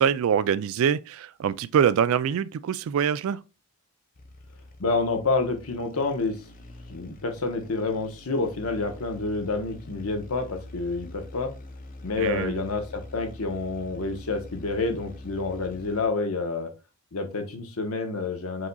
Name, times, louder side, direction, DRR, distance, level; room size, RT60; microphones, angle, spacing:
voice 1, 0.0-3.4 12.2-12.6, right 8 dB, 65° right, 0.3 m, -24 dB
sound 1, 4.1-16.3, left 1 dB, 40° left, 0.6 m, -45 dB
voice 2, 4.8-6.4 6.9-11.5 12.0-16.7 17.1-18.7, left 3 dB, 75° left, 0.9 m, -28 dB
4.8 x 4.0 x 2.3 m
head